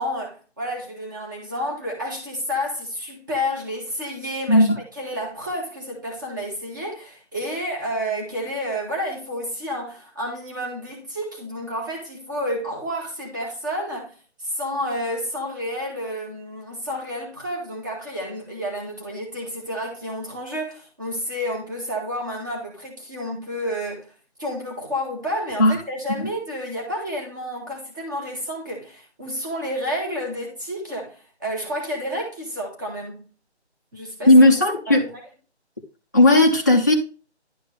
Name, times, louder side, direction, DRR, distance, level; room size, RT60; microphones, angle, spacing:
voice 1, 0.0-24.1 24.4-33.3 33.9-34.3 34.9-35.1, equal, 15° right, 1.8 m, -30 dB
voice 2, 34.3-35.0 36.1-36.9, left 1 dB, 15° left, 0.8 m, -15 dB
11.0 x 5.1 x 3.3 m
figure-of-eight pair, 175°, 34 cm